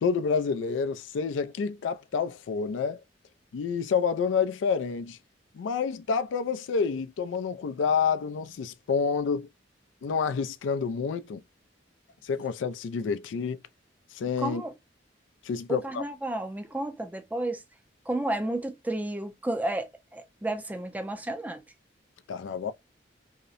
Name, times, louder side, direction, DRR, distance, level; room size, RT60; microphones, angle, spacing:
voice 1, 0.0-3.0 3.5-5.2 5.5-9.5 10.0-11.4 12.2-13.6 14.1-14.6 15.4-16.0 22.3-22.7, left 6 dB, 90° left, 0.3 m, -28 dB
voice 2, 14.4-14.7 15.7-17.6 18.1-21.6, right 1 dB, 10° right, 0.4 m, -32 dB
2.7 x 2.0 x 2.4 m
head